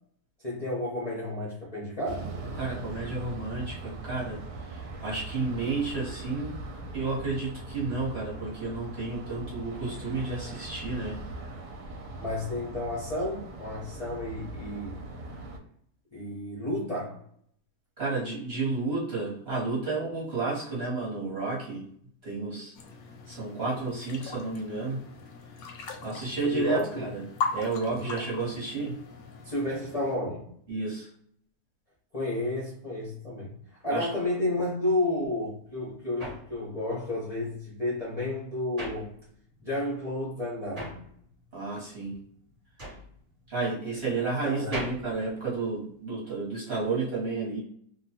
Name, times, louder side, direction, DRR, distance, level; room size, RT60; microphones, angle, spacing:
voice 1, 0.4-2.3 12.2-15.0 16.1-17.2 26.4-27.1 27.9-28.2 29.4-30.5 32.1-33.5 33.8-39.1 39.6-41.0 44.4-44.8, left 1 dB, 45° left, -6 dB, 0.4 m, -31 dB
sound 1, 2.1-15.6, right 2 dB, 75° right, 1.1 m, -40 dB
voice 2, 2.5-6.5 6.9-11.2 18.0-21.9 22.2-22.7 23.3-25.0 26.0-27.2 27.5-29.0 30.7-31.1 33.9-34.1 41.5-42.2 43.5-47.6, right 3 dB, 45° right, -7 dB, 1.0 m, -31 dB
sound 2, 22.8-30.2, left 4 dB, 70° left, 0.9 m, -39 dB
sound 3, 35.4-39.7 40.0-46.2, right 1 dB, 25° right, 1.2 m, -42 dB
2.8 x 2.2 x 2.7 m, 0.66 s
omnidirectional pair, 1.8 m